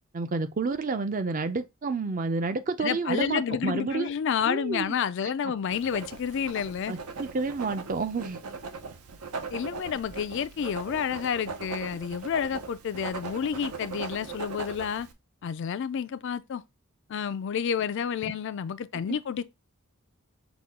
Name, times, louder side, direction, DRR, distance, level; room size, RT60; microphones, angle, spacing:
voice 1, 0.1-4.1 4.5-4.9 6.9-8.4, right 4 dB, 40° right, 0.5 m, -30 dB
voice 2, 2.8-6.9 9.5-15.1 15.4-16.6 17.1-19.4, left 7 dB, 55° left, 0.3 m, -30 dB
Writing, 5.7-15.1, right 4 dB, 85° right, 0.7 m, -39 dB
5.9 x 2.3 x 3.6 m
head